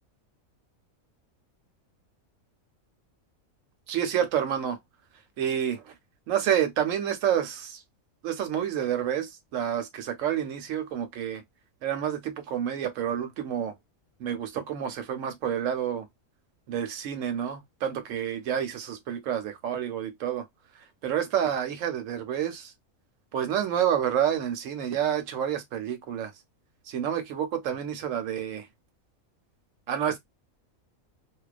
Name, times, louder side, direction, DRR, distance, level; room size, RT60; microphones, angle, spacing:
voice 1, 3.9-4.8 5.4-5.9 6.3-7.8 8.2-11.4 11.8-13.7 14.2-16.1 16.7-20.5 20.8-22.7 23.3-26.3 26.9-28.7 29.9-30.2, right 9 dB, 70° right, 1.0 m, -29 dB
2.3 x 2.2 x 2.4 m
omnidirectional pair, 1.5 m